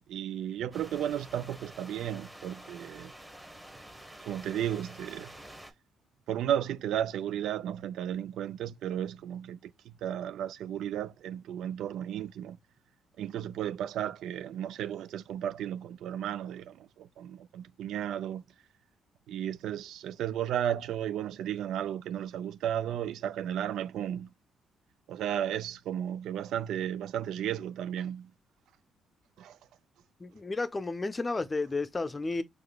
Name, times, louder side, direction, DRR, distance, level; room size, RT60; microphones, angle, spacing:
voice 1, 0.1-3.1 4.3-5.3 6.3-12.6 13.2-18.4 19.3-24.3 25.1-28.3 29.4-29.6, right 10 dB, 80° right, 0.4 m, -34 dB
sound 1, 0.7-5.7, right 1 dB, 5° right, 1.1 m, -49 dB
voice 2, 30.2-32.4, left 3 dB, 25° left, 0.6 m, -32 dB
4.9 x 3.1 x 2.3 m
cardioid pair, 90°, 0 cm